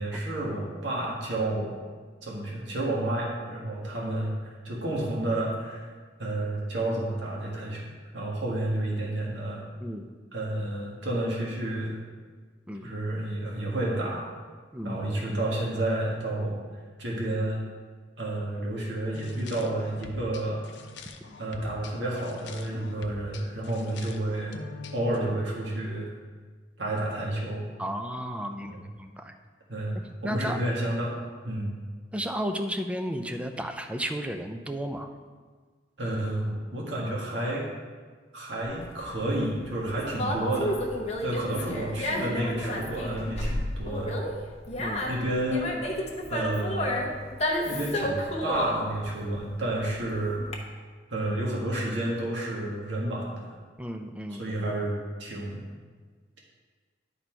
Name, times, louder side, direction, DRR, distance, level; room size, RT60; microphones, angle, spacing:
voice 1, 0.0-1.8 2.2-5.8 6.2-9.6 10.3-11.9 12.8-14.3 14.8-16.6 17.0-17.6 18.2-20.6 21.4-24.5 24.9-26.1 26.8-27.7 28.7-28.8 29.7-30.0 30.2-31.1 31.4-31.7 36.0-37.6 38.3-40.7 41.2-44.2 45.1-45.7 46.3-47.1 47.6-50.4 51.1-53.5 54.4-55.6, right 1 dB, 80° right, -4 dB, 1.8 m, -30 dB
voice 2, 14.7-15.4 22.7-23.0 27.8-29.3 30.0-30.6 32.1-35.1 44.8-45.1 53.8-54.4, equal, 5° right, 5 dB, 0.5 m, -34 dB
sound 1, 19.1-25.2, left 3 dB, 75° left, 0.7 m, -43 dB
Conversation, 38.6-50.5, left 1 dB, 35° left, 1.0 m, -31 dB
11.0 x 4.3 x 4.5 m, 1.5 s
head